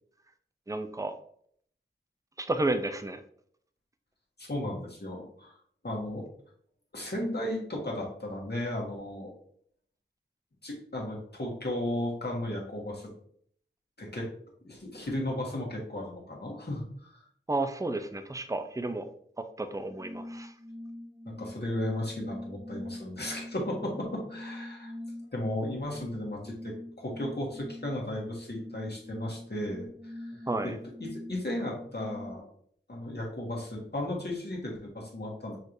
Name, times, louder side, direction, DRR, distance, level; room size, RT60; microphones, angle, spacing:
voice 1, 0.7-1.1 2.4-3.2 17.5-19.0 19.6-20.5 30.5-30.8, right 2 dB, 15° right, 8 dB, 0.5 m, -31 dB
voice 2, 4.4-5.6 5.8-6.3 6.9-9.3 10.6-13.1 14.0-14.3 14.6-17.2 21.2-24.9 25.3-30.7 31.0-32.4 32.9-35.6, left 1 dB, 55° left, -2 dB, 1.6 m, -35 dB
sound 1, 20.0-32.4, left 1 dB, 85° right, 2.1 m, -43 dB
6.5 x 3.1 x 2.6 m, 0.62 s
wide cardioid pair, 40°, 20 cm